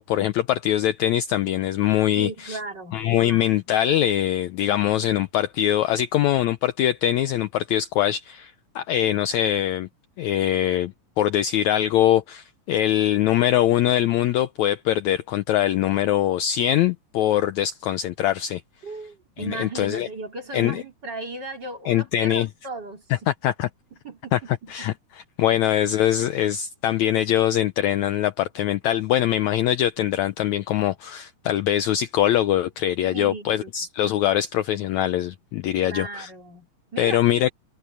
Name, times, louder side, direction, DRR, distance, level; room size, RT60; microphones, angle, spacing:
voice 1, 0.0-2.6 2.9-9.9 10.2-18.6 19.5-20.1 20.5-20.8 21.8-22.5 23.3-23.7 24.3-24.4 24.7-36.3 37.0-37.5, left 12 dB, 75° left, 1.7 m, -23 dB
voice 2, 2.1-3.6 18.8-23.3 24.0-24.9 25.5-25.6 33.0-33.7 35.8-36.7 36.9-37.4, right 2 dB, 35° right, 3.2 m, -36 dB
omnidirectional pair, 3.9 m